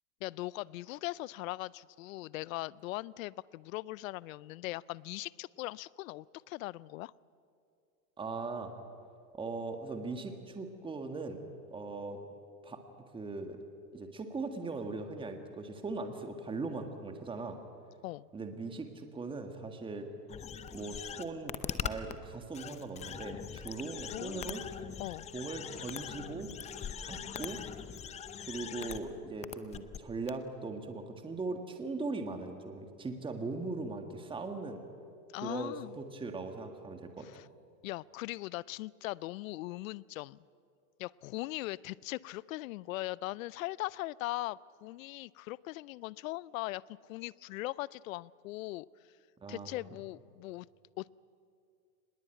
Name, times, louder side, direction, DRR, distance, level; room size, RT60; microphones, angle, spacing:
voice 1, 0.2-7.1 18.0-18.3 24.1-24.6 25.0-25.3 35.3-36.0 37.2-37.5 37.8-40.4 41.0-46.8 47.1-48.9 49.5-50.7 51.0-51.1, left 18 dB, 60° left, 23 dB, 0.6 m, -40 dB
voice 2, 8.2-8.7 9.3-11.4 11.7-12.2 12.6-12.8 13.1-13.6 13.9-17.6 18.3-20.1 20.7-24.6 25.3-26.5 27.0-27.6 28.5-34.9 35.4-37.3 49.4-49.7, right 3 dB, 10° right, 6 dB, 1.7 m, -39 dB
sound 1, 20.3-22.1 22.5-29.0 29.4-30.0 30.3-30.4, left 8 dB, 15° left, 0.6 m, -41 dB
24.0 x 20.5 x 9.1 m, 2.4 s
supercardioid pair, 140°, 47 cm